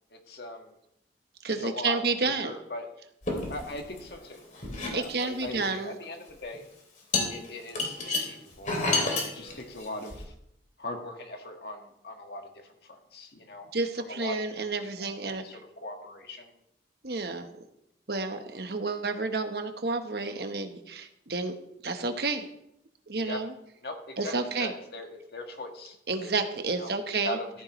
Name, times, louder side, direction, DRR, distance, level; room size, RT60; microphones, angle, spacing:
voice 1, 0.1-0.8 1.5-2.9 3.5-4.5 4.9-6.7 7.3-10.3 10.8-13.7 14.0-14.4 15.0-16.5 23.1-23.4 23.8-26.3 26.8-27.6, left 1 dB, 65° left, 3 dB, 1.8 m, -40 dB
voice 2, 1.4-2.5 4.9-6.0 13.7-15.4 17.0-17.5 18.1-21.5 21.8-22.4 23.1-23.5 24.2-24.7 26.1-27.4, right 3 dB, 65° right, 7 dB, 1.2 m, -30 dB
sound 1, 3.2-4.2 4.5-5.6 6.4-6.6 7.1-10.2, left 3 dB, 45° left, 3.0 m, -30 dB
14.0 x 14.0 x 3.2 m, 0.77 s
head